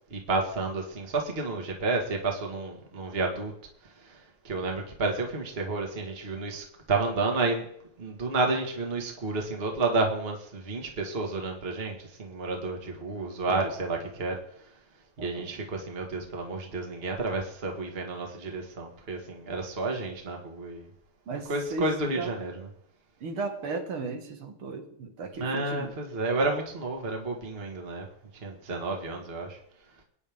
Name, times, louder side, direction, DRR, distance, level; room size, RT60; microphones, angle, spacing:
voice 1, 0.1-3.5 4.0-7.7 8.0-14.4 15.2-20.9 21.3-22.5 25.4-28.1 28.4-29.6, right 3 dB, 30° right, 1 dB, 1.9 m, -31 dB
voice 2, 15.2-15.6 21.3-22.3 23.2-25.9, right 3 dB, 75° right, 5 dB, 2.6 m, -36 dB
23.0 x 9.7 x 3.6 m, 0.71 s
omnidirectional pair, 2.4 m